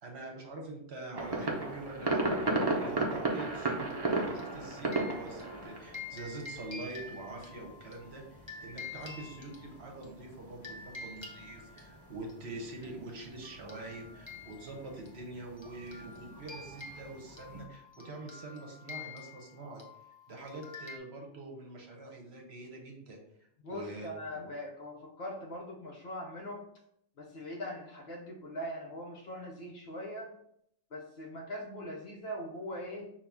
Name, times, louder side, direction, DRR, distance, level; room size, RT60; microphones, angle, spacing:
voice 1, 0.0-2.2 2.7-19.8 20.3-23.2 23.7-24.5, right 2 dB, 55° right, 1 dB, 1.0 m, -45 dB
sound 1, 1.1-17.6, right 2 dB, 30° right, 0.4 m, -37 dB
sound 2, 3.9-10.1 10.6-12.4 12.8-13.0 13.2-21.0, left 3 dB, 25° left, 0.7 m, -48 dB
voice 2, 23.6-26.6 27.2-30.3 30.9-33.1, equal, 55° left, 1 dB, 0.9 m, -41 dB
5.6 x 2.5 x 3.5 m, 0.73 s
omnidirectional pair, 1.4 m